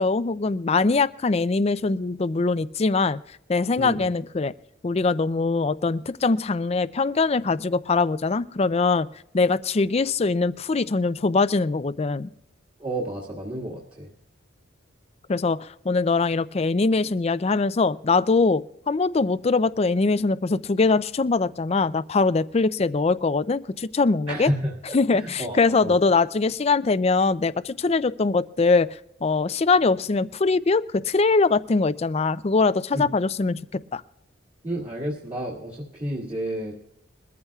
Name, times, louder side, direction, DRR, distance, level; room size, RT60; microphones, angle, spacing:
voice 1, 0.0-3.2 3.5-4.5 4.8-9.1 9.3-12.3 15.3-24.5 24.9-28.9 29.2-33.6 33.9-34.0, left 3 dB, 30° left, 15 dB, 0.4 m, -22 dB
voice 2, 12.8-14.1 24.3-24.7 25.1-25.9 32.9-33.1 34.6-36.7, right 1 dB, 30° right, -5 dB, 1.9 m, -30 dB
22.5 x 14.5 x 2.4 m, 0.76 s
head